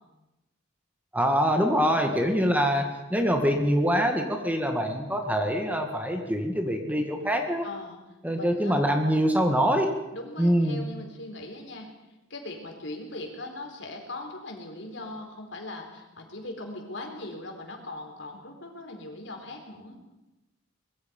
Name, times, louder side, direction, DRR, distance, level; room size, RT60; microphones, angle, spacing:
voice 1, 1.1-7.7 8.2-9.9 10.4-10.8, equal, 10° right, 4 dB, 1.9 m, -24 dB
voice 2, 2.0-2.4 7.6-8.0 8.3-8.8 10.1-11.9 12.3-20.0, left 2 dB, 65° left, 3 dB, 4.5 m, -40 dB
24.0 x 21.0 x 5.4 m, 0.99 s
head